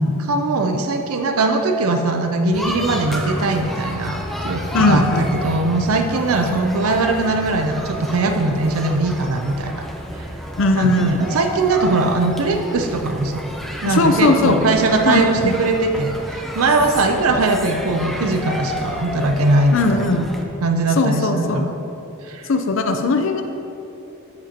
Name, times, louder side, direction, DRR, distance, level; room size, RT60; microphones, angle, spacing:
voice 1, 0.3-9.9 10.1-10.3 10.7-13.4 13.8-20.2 20.6-21.7 22.2-22.5, right 2 dB, 90° right, 5 dB, 0.6 m, -20 dB
sound 1, 2.5-20.4, equal, ahead, 0.6 m, -30 dB
voice 2, 4.7-5.3 10.6-11.2 13.9-14.6 15.0-15.5 19.7-20.3 21.0-21.7 22.5-23.4, left 3 dB, 65° left, 6 dB, 0.6 m, -19 dB
12.0 x 7.9 x 2.9 m, 2.9 s
head